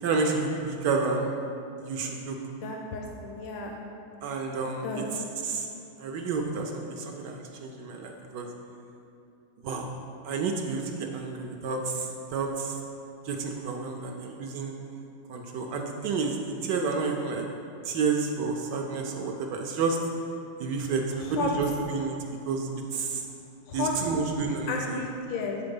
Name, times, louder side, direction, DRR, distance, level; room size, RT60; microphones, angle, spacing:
voice 1, 0.0-1.3 1.8-2.4 4.2-5.7 6.0-8.5 9.6-9.9 10.2-12.8 13.2-14.7 15.3-17.5 17.8-20.0 20.6-22.2 22.5-23.2 23.7-25.0, right 4 dB, 75° right, 2 dB, 1.1 m, -30 dB
voice 2, 2.6-3.8 4.8-5.1 21.2-21.5 23.7-23.9 24.7-25.6, left 4 dB, 85° left, 1 dB, 1.4 m, -33 dB
8.2 x 3.8 x 5.2 m, 2.6 s
omnidirectional pair, 2.0 m